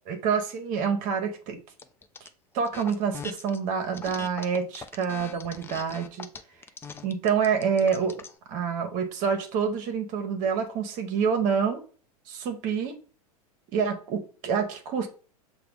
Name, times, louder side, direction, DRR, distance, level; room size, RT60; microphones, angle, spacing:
voice 1, 0.1-1.6 2.2-2.3 2.5-6.3 7.0-8.2 8.5-11.8 12.3-13.0 13.7-15.1, right 6 dB, 45° right, 0.9 m, -27 dB
sound 1, 1.8-2.3 2.6-3.6 3.9-8.4, left 4 dB, 10° left, 0.4 m, -41 dB
6.7 x 2.3 x 3.4 m
hypercardioid pair, 95°, 19 cm